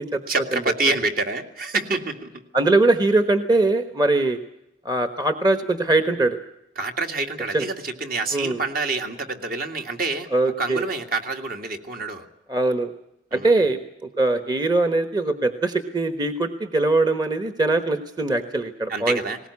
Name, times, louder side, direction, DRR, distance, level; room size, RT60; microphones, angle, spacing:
voice 1, 0.3-2.3 6.8-10.3 10.6-12.3 13.3-13.6 18.9-19.4, right 3 dB, 55° right, 4 dB, 2.2 m, -27 dB
voice 2, 2.5-4.4 4.8-6.4 7.5-7.6 8.3-8.6 10.3-10.8 12.5-12.9 13.3-19.2, right 2 dB, 25° right, 9 dB, 1.1 m, -21 dB
20.5 x 18.5 x 9.6 m, 0.84 s
head